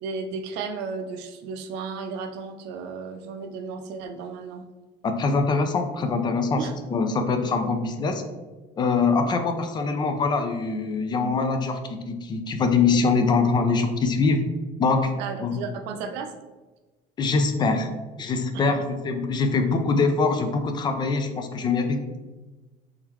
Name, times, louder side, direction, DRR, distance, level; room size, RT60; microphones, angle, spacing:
voice 1, 0.0-4.7 6.6-6.7 15.2-16.4 18.5-18.6, right 5 dB, 90° right, 6 dB, 0.4 m, -34 dB
voice 2, 5.0-6.7 6.9-8.2 8.8-14.4 14.8-15.1 15.4-15.6 17.2-17.9 18.2-22.1, left 4 dB, 25° left, 7 dB, 0.4 m, -23 dB
3.6 x 3.4 x 3.0 m, 1.2 s
cardioid pair, 155°, 17 cm